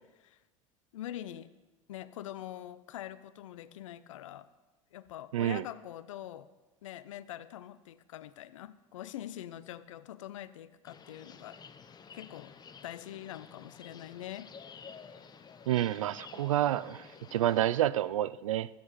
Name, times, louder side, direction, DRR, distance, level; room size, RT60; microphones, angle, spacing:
voice 1, 0.9-1.5 1.9-4.5 4.9-6.5 6.8-11.6 12.1-12.6 12.8-14.5, left 12 dB, 75° left, 16 dB, 0.5 m, -44 dB
voice 2, 5.3-5.6 15.7-18.7, right 12 dB, 80° right, 19 dB, 0.4 m, -29 dB
sound 1, 10.8-17.9, left 6 dB, 25° left, 0.8 m, -52 dB
13.5 x 9.4 x 4.1 m, 1.2 s
hypercardioid pair, 80°, 17 cm